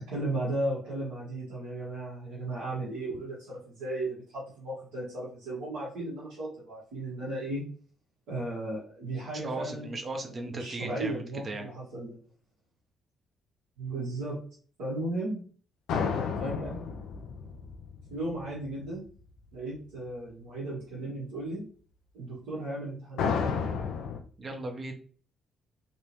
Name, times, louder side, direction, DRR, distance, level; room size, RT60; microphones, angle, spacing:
voice 1, 0.1-7.6 8.3-9.9 10.3-12.2 13.8-14.4 14.8-15.4 16.4-16.8 18.1-19.1 19.5-21.7 22.1-23.5, right 1 dB, 75° right, -8 dB, 1.4 m, -35 dB
voice 2, 9.4-11.7 24.4-24.9, right 2 dB, 40° right, 4 dB, 0.8 m, -37 dB
sound 1, 15.9-18.9 23.2-24.2, left 6 dB, 70° left, 0.5 m, -32 dB
3.4 x 2.9 x 2.9 m, 0.41 s
hypercardioid pair, 45°, 0 cm